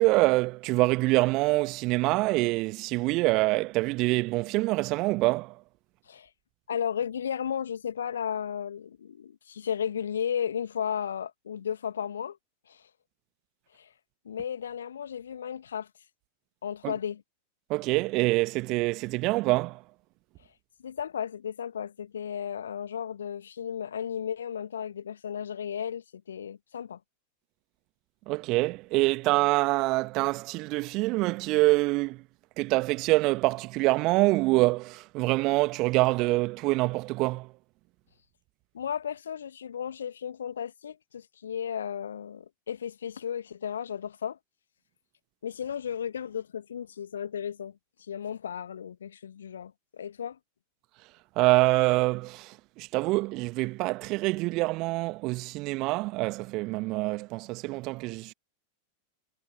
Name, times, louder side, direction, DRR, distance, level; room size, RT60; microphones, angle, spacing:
voice 1, 0.0-5.6 16.8-16.9 17.7-19.8 28.3-32.2 32.6-37.5 51.4-58.3, right 22 dB, 40° right, 1.3 m, -25 dB
voice 2, 6.7-12.4 12.7-12.9 13.7-13.9 14.2-15.9 16.6-17.2 20.8-27.0 38.7-44.4 45.4-50.4, left 8 dB, 65° left, 1.6 m, -34 dB
figure-of-eight pair, 90°, 0 cm